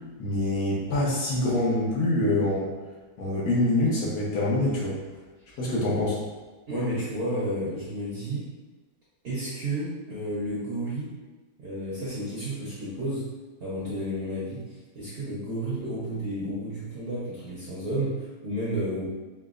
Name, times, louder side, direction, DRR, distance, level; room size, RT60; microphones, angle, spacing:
voice 1, 0.2-2.7 3.2-5.0 5.6-6.2, left 1 dB, 70° left, -5 dB, 1.3 m, -25 dB
voice 2, 6.7-8.5 9.2-11.1 11.6-13.2 13.6-14.6 14.9-19.1, right 1 dB, 50° right, -8 dB, 0.7 m, -31 dB
4.6 x 2.1 x 2.4 m, 1.2 s
omnidirectional pair, 1.7 m